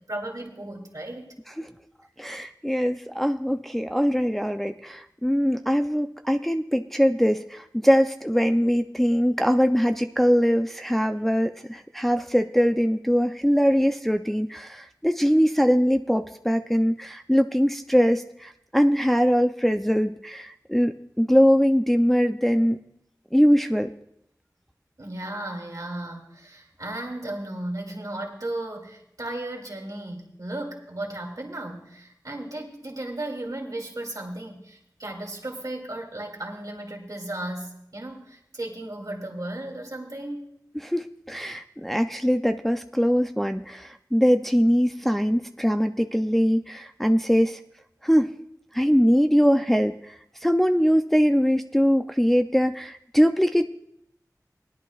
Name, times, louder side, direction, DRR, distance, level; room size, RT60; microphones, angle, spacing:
voice 1, 0.0-1.3 25.0-40.5, right 1 dB, 60° right, 1 dB, 2.3 m, -35 dB
voice 2, 2.2-22.8 23.3-23.9 40.8-47.6 48.0-48.3 48.7-50.0 50.4-53.7, equal, 5° left, 6 dB, 0.5 m, -22 dB
19.5 x 11.0 x 2.4 m, 0.74 s
wide cardioid pair, 55°, 7 cm